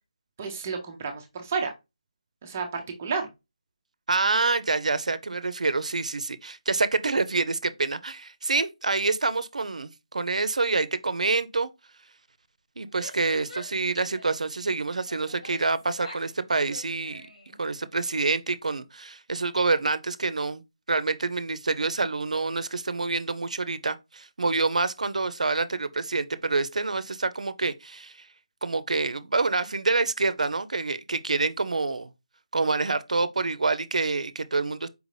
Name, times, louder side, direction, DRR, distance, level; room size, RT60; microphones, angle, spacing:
voice 1, 0.4-1.7 2.4-3.3, right 5 dB, 20° right, 0.4 m, -31 dB
voice 2, 4.1-11.7 12.8-17.3 17.6-20.6 20.9-28.3 28.6-32.1 32.5-34.9, right 3 dB, 75° right, 0.5 m, -27 dB
Female speech woman speaking / Yell, 12.8-14.4 15.1-16.3 16.6-17.6, left 1 dB, 75° left, 2.1 m, -46 dB
4.7 x 2.6 x 3.1 m
figure-of-eight pair, 175°, 4 cm